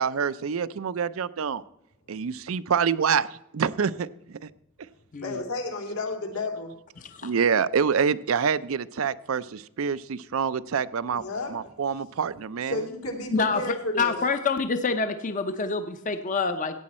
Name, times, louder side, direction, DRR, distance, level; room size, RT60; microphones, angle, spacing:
voice 1, 0.0-1.6 2.1-4.5 7.2-11.2 11.5-12.8, right 6 dB, 70° right, 15 dB, 0.5 m, -26 dB
voice 2, 5.2-6.7 11.1-11.5 12.7-14.2, left 2 dB, 80° left, 3 dB, 2.5 m, -31 dB
voice 3, 7.0-7.3 13.3-13.6 14.0-16.8, left 4 dB, 35° left, 8 dB, 0.6 m, -27 dB
15.0 x 8.8 x 4.2 m, 0.84 s
head